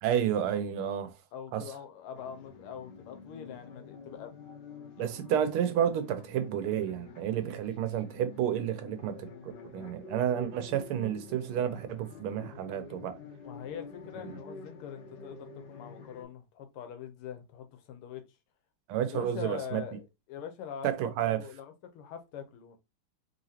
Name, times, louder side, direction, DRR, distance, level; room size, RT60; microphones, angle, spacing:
voice 1, 0.0-1.1 1.5-1.6 5.0-13.2 14.2-14.3 18.9-19.8 20.8-21.4, right 9 dB, 85° right, 1.6 m, -31 dB
voice 2, 1.3-4.3 5.0-5.1 13.4-18.2 19.1-20.9 21.2-22.8, left 8 dB, 85° left, 1.7 m, -43 dB
sound 1, 2.1-16.2, left 5 dB, 60° left, 1.5 m, -48 dB
4.0 x 3.5 x 2.7 m
omnidirectional pair, 2.3 m